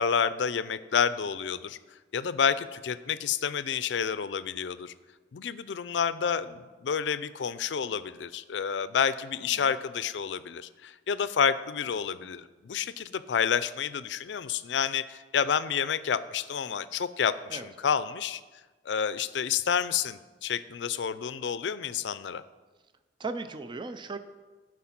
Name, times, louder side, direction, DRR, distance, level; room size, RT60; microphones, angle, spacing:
voice 1, 0.0-1.8 2.1-4.9 5.3-18.4 18.9-22.4, left 7 dB, 80° left, 15 dB, 0.4 m, -29 dB
voice 2, 23.2-24.2, right 3 dB, 25° right, 10 dB, 0.4 m, -36 dB
12.5 x 4.8 x 5.9 m, 1.3 s
head